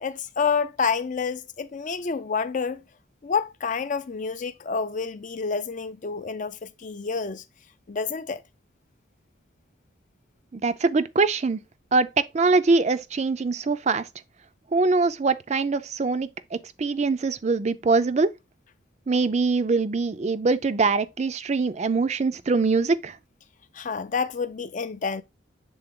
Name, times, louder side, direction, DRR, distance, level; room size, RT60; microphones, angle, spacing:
voice 1, 0.0-2.8 3.2-7.4 7.9-8.4 23.7-25.2, left 5 dB, 40° left, 0.4 m, -28 dB
voice 2, 10.5-11.6 11.9-14.1 14.7-18.3 19.1-23.2, right 3 dB, 35° right, 0.4 m, -23 dB
6.9 x 3.7 x 3.6 m
head